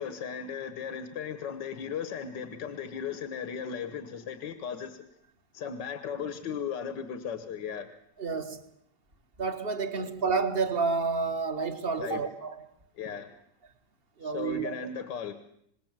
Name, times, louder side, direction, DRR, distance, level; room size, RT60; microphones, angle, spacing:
voice 1, 0.0-5.0 5.5-7.9 9.9-10.1 12.0-12.2 13.0-13.4 14.2-15.3, left 7 dB, 75° left, 2.0 m, -36 dB
voice 2, 8.2-8.6 9.4-12.6 14.2-14.7, right 4 dB, 35° right, 1.8 m, -29 dB
26.5 x 20.5 x 7.5 m
omnidirectional pair, 1.9 m